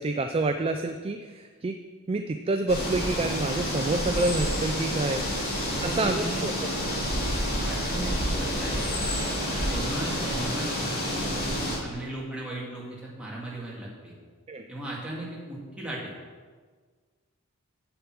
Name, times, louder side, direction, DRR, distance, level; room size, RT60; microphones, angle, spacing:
voice 1, 0.0-1.8 2.1-5.2 5.8-6.5 14.5-14.6, right 2 dB, 25° right, 7 dB, 0.3 m, -28 dB
sound 1, 2.7-11.8, equal, 45° left, 2.6 m, -29 dB
voice 2, 5.6-6.5 7.6-8.9 9.7-14.1 14.7-16.1, right 1 dB, 5° right, -5 dB, 2.1 m, -37 dB
8.2 x 6.9 x 5.9 m, 1.5 s
head